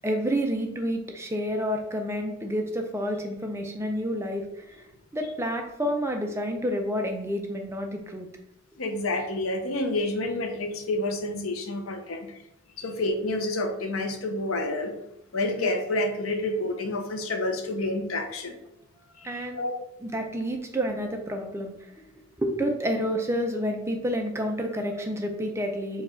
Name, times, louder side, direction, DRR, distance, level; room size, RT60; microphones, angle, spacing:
voice 1, 0.0-4.9 5.1-8.3 15.6-15.7 19.2-19.6 20.0-21.7 22.4-26.0, equal, 15° right, 3 dB, 0.4 m, -29 dB
voice 2, 8.8-12.3 12.8-14.9 15.3-18.6 19.2-19.9, left 2 dB, 90° left, 6 dB, 0.6 m, -29 dB
4.7 x 2.3 x 4.3 m, 0.79 s
head